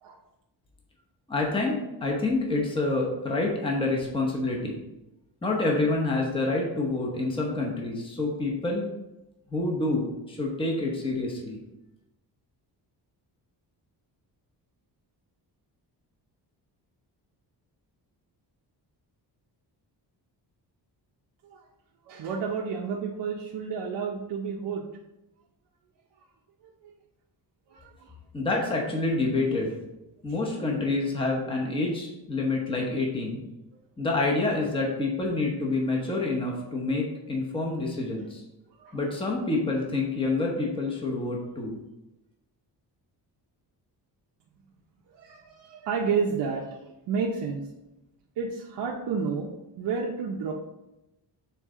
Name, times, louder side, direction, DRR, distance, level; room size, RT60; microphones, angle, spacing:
voice 1, 1.3-4.8 5.4-8.9 9.5-11.6 28.3-29.8 30.2-33.4 34.0-38.4 38.9-41.8, left 2 dB, 10° left, -1 dB, 0.8 m, -27 dB
voice 2, 22.1-24.8 26.6-26.7 27.7-28.1 38.8-39.0 45.1-47.7 48.4-50.5, right 5 dB, 85° right, -2 dB, 0.8 m, -31 dB
7.0 x 3.9 x 3.7 m, 0.94 s
wide cardioid pair, 180°, 42 cm